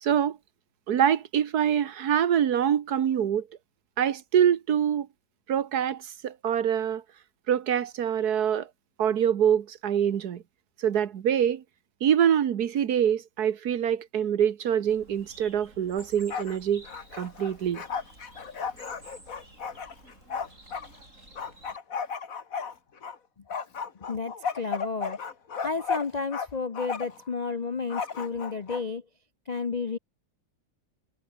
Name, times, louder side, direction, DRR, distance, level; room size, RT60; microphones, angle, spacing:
voice 1, 0.0-0.4 0.9-3.5 4.0-5.1 5.5-7.0 7.5-8.7 9.0-10.4 10.8-11.6 12.0-16.9 17.2-17.8, right 9 dB, 60° right, 1.6 m, -25 dB
Bird, 14.9-21.8, right 1 dB, 40° right, 8.6 m, -52 dB
Bark, 16.0-16.6 16.8-20.9 21.4-23.2 23.5-26.5 26.7-27.2 27.9-28.8, left 6 dB, 50° left, 2.1 m, -34 dB
voice 2, 24.1-25.2 25.6-29.0 29.5-30.0, left 4 dB, 65° left, 0.4 m, -32 dB
omnidirectional pair, 2.0 m